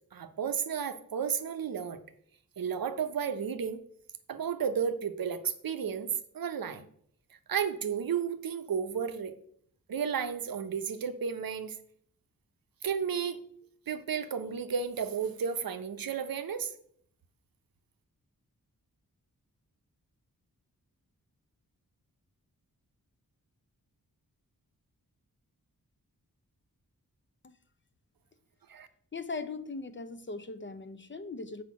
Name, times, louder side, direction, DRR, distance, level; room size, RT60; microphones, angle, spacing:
voice 1, 0.1-2.0 2.6-3.8 4.3-6.1 6.3-6.9 7.5-9.3 9.9-11.7 12.8-13.4 13.9-16.7 28.7-28.9, right 7 dB, 75° right, 10 dB, 0.7 m, -33 dB
voice 2, 29.1-31.6, left 3 dB, 35° left, 11 dB, 0.6 m, -39 dB
6.2 x 5.0 x 5.8 m, 0.65 s
wide cardioid pair, 85°, 36 cm